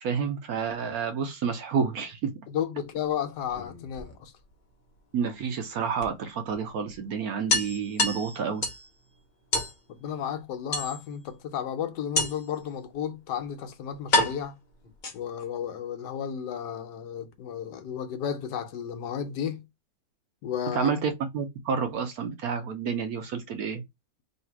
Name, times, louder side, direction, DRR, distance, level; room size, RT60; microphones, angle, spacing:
voice 1, 0.0-2.3 5.1-8.6 20.7-23.8, right 6 dB, 65° right, 1.0 m, -29 dB
voice 2, 2.5-4.3 9.9-14.6 15.1-19.6 20.4-20.9, left 8 dB, 75° left, 1.2 m, -33 dB
sound 1, 3.5-4.5 6.0-6.1 6.5-6.6 6.9-7.0 7.5-8.9 9.5-9.8 10.7-11.3 12.2-12.6 13.4-13.5 14.1-15.5, left 2 dB, 45° left, 0.6 m, -28 dB
3.2 x 2.8 x 4.4 m
omnidirectional pair, 1.9 m